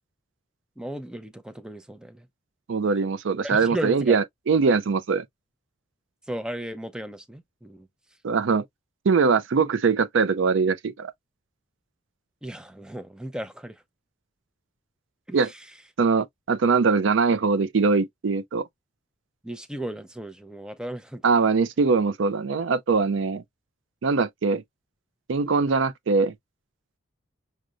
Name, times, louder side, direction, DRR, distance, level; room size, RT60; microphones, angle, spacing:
voice 1, 0.8-2.3 3.4-4.2 6.3-7.9 12.4-13.8 15.3-15.7 19.4-21.3, right 1 dB, 5° right, 0.4 m, -35 dB
voice 2, 2.7-5.2 8.2-8.6 9.0-11.1 15.3-15.5 16.0-18.7 21.2-23.4 24.0-24.6 25.3-26.3, right 4 dB, 65° right, 0.4 m, -22 dB
6.2 x 2.1 x 2.4 m
head